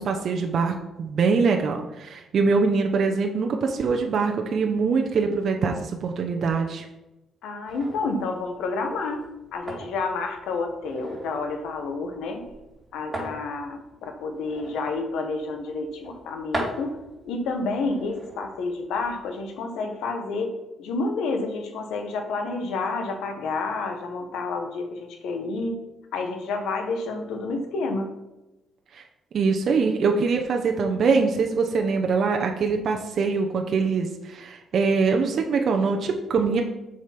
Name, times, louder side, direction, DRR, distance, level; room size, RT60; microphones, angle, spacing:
voice 1, 0.0-6.8 28.9-29.0 29.3-36.6, right 4 dB, 60° right, 3 dB, 0.9 m, -23 dB
voice 2, 7.4-9.3 9.5-12.4 12.9-17.0 17.2-25.8 26.1-28.1, left 3 dB, 85° left, 5 dB, 1.3 m, -29 dB
sound 1, 7.7-19.5, right 1 dB, 25° right, 3.1 m, -40 dB
7.2 x 5.1 x 5.9 m, 0.98 s
cardioid pair, 90°, 0 cm